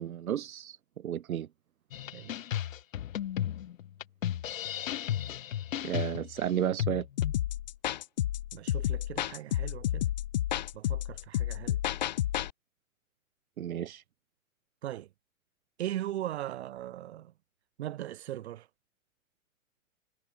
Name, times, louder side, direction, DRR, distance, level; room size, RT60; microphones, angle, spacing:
voice 1, 0.0-1.5 5.8-7.1 13.6-14.0, right 10 dB, 90° right, 1.2 m, -33 dB
sound 1, 1.9-7.3, left 11 dB, 70° left, 1.4 m, -34 dB
sound 2, 7.2-12.5, left 12 dB, 35° left, 0.5 m, -31 dB
voice 2, 8.5-10.1 10.7-11.8 14.8-15.1 15.8-17.3 17.8-18.7, right 13 dB, 50° right, 4.5 m, -39 dB
hypercardioid pair, 165°, 41 cm